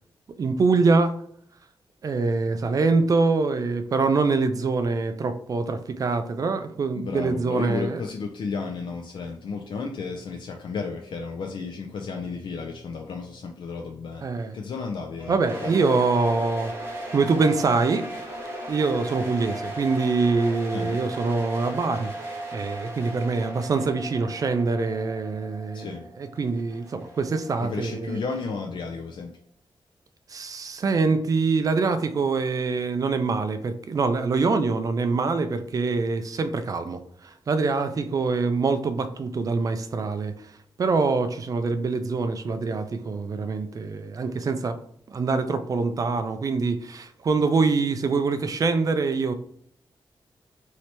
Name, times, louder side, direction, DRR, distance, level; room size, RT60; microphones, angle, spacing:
voice 1, 0.4-1.1 2.0-8.0 14.2-14.6 15.3-16.7 17.1-18.0 18.7-25.9 26.2-28.2 30.3-40.4 40.8-44.8 45.1-49.3, right 4 dB, 40° right, 0.3 m, -24 dB
voice 2, 7.0-14.3 14.5-15.7 20.7-21.0 25.7-26.1 27.6-29.3, left 4 dB, 65° left, 0.4 m, -33 dB
sound 1, 15.2-20.5, left 1 dB, 20° left, 1.2 m, -44 dB
sound 2, 15.4-28.3, right 1 dB, 25° right, 0.8 m, -37 dB
2.9 x 2.7 x 3.2 m
wide cardioid pair, 145°, 9 cm